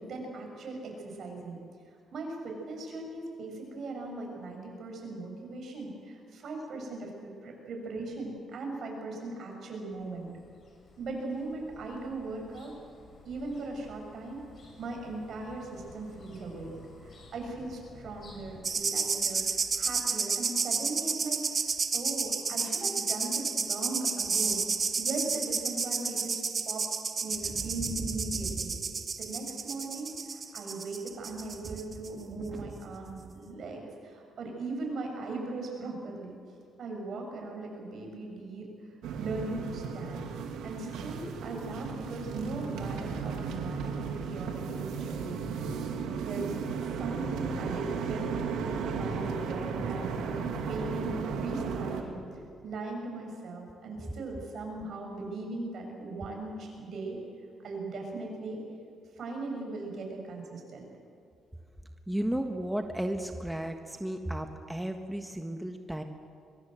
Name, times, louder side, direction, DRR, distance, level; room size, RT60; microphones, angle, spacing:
voice 1, 0.0-1.6 2.1-10.3 11.0-12.7 13.2-14.4 14.8-16.7 17.0-21.6 21.9-26.9 27.2-28.7 29.2-36.3 36.8-38.7 39.2-40.3 40.6-45.7 46.2-46.6 46.8-57.2 57.6-58.6 59.2-60.9, right 2 dB, 60° right, 1 dB, 7.1 m, -39 dB
sound 1, 9.9-18.6, left 2 dB, 50° left, 7.6 m, -54 dB
sound 2, 18.6-32.7 33.1-33.3, right 5 dB, 40° right, 2.1 m, -31 dB
sound 3, 39.0-52.0, right 5 dB, 85° right, 2.5 m, -35 dB
voice 2, 62.1-66.0, right 1 dB, 5° right, 5 dB, 1.4 m, -33 dB
22.5 x 22.0 x 7.9 m, 2.3 s
cardioid pair, 90°, 0 cm